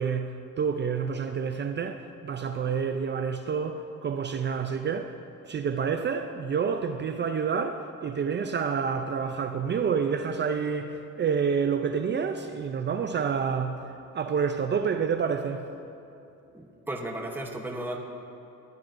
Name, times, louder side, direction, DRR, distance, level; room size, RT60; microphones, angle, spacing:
voice 1, 0.0-5.2 5.4-13.8 14.1-15.7, right 6 dB, 35° right, 0.4 m, -28 dB
voice 2, 16.5-18.0, right 1 dB, 5° right, 0.9 m, -35 dB
13.5 x 11.0 x 2.6 m
cardioid pair, 90°, 30 cm